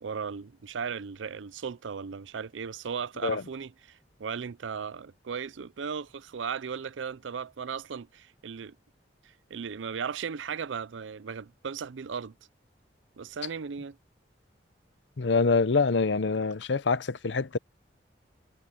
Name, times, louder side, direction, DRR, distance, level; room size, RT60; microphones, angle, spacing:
voice 1, 0.0-8.8 9.5-12.3 13.2-14.0, right 6 dB, 90° right, 0.5 m, -36 dB
voice 2, 15.2-17.6, left 4 dB, 75° left, 0.7 m, -25 dB
head